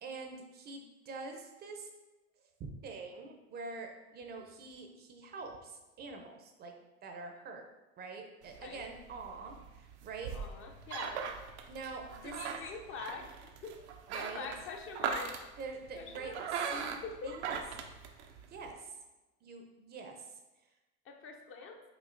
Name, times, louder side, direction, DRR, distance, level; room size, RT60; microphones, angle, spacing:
voice 1, 0.0-1.9 2.6-6.8 7.0-7.6 8.0-10.3 11.7-12.6 14.1-14.5 15.6-16.3 16.7-17.6 18.5-18.9 19.4-20.3, right 4 dB, 30° right, 3 dB, 0.5 m, -45 dB
sound 1, 8.4-18.7, right 6 dB, 90° right, 0.5 m, -41 dB
voice 2, 10.3-11.2 12.2-13.8 14.1-15.4 15.9-16.4 17.0-17.4 21.1-21.8, left 5 dB, 40° left, 3 dB, 0.5 m, -44 dB
5.0 x 2.7 x 2.5 m, 1.1 s
supercardioid pair, 110°, 32 cm